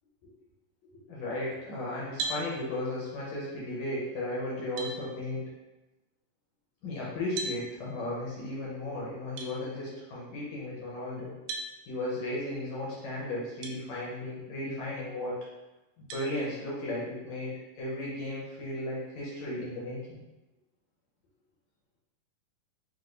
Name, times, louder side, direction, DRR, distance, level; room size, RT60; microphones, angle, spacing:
voice 1, 0.9-5.5 6.8-11.3 11.9-15.4 16.0-20.2, left 1 dB, 70° left, -6 dB, 2.0 m, -35 dB
sound 1, 2.2-2.5 4.1-4.2 4.8-5.0 7.4-7.6 9.4-9.5 11.5-11.7 13.6-13.8 14.4-14.5 16.1-16.3, right 3 dB, 85° right, 2.3 m, -35 dB
6.1 x 2.8 x 2.6 m, 1.0 s
omnidirectional pair, 3.8 m